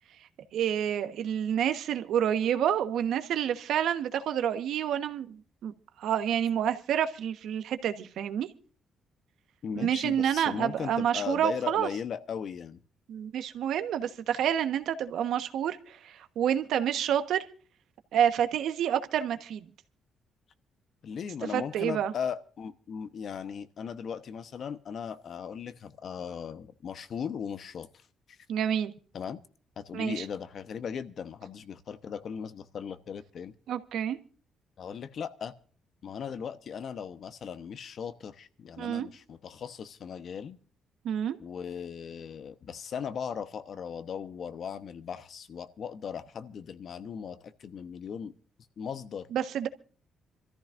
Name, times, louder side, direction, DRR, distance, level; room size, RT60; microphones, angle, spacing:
voice 1, 0.5-5.7 6.0-8.5 9.7-11.9 13.1-17.5 18.1-19.6 21.5-22.1 28.5-28.9 29.9-30.2 33.7-34.2 38.8-39.1 41.0-41.4 49.3-49.7, right 9 dB, 75° right, 1.2 m, -28 dB
voice 2, 9.6-12.8 21.0-27.9 28.3-28.4 29.1-29.4 29.8-33.5 34.8-35.5 36.0-40.6 41.4-48.3 48.8-49.3, left 7 dB, 60° left, 1.0 m, -38 dB
26.5 x 14.0 x 2.6 m
cardioid pair, 90°, 0 cm